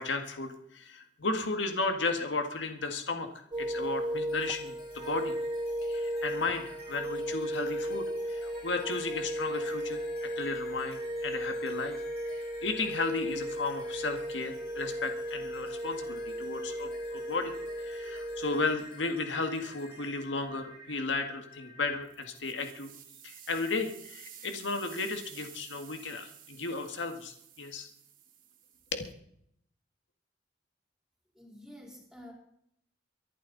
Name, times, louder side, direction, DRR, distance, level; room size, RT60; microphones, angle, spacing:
voice 1, 0.0-3.3 3.6-5.3 5.8-12.0 12.3-17.5 17.8-22.9 23.2-27.9 28.9-29.1, left 3 dB, 90° left, 6 dB, 1.8 m, -34 dB
sound 1, 3.5-18.8, equal, 25° right, 0.5 m, -35 dB
sound 2, 4.3-21.9, left 2 dB, 55° left, 5.3 m, -51 dB
sound 3, 22.0-29.1, right 10 dB, 45° right, 2.6 m, -52 dB
voice 2, 31.3-32.3, equal, 5° right, -1 dB, 4.2 m, -49 dB
24.0 x 11.0 x 4.1 m, 0.70 s
head